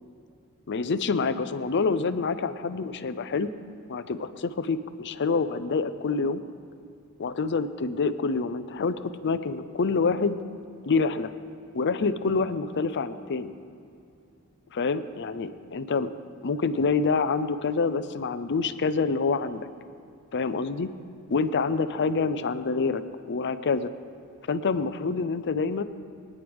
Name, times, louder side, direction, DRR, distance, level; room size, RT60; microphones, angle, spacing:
voice 1, 0.7-3.5 3.9-6.4 7.2-10.4 10.9-11.3 11.7-13.5 14.7-16.1 16.4-19.7 20.3-20.9 21.3-23.9 24.5-25.8, left 4 dB, 50° left, 11 dB, 0.5 m, -27 dB
23.0 x 9.4 x 3.5 m, 2.6 s
head